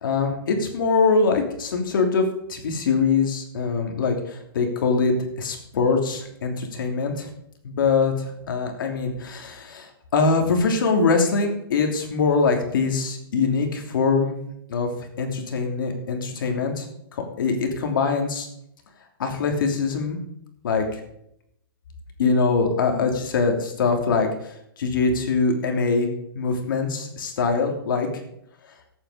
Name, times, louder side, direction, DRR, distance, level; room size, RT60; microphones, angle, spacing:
voice 1, 0.0-2.2 2.5-7.3 7.6-14.3 14.7-14.9 15.2-16.9 17.1-18.5 19.2-20.2 20.6-21.0 22.2-26.1 26.3-28.2, left 4 dB, 65° left, 3 dB, 3.0 m, -23 dB
14.0 x 8.8 x 5.1 m, 0.76 s
hypercardioid pair, 165°, 12 cm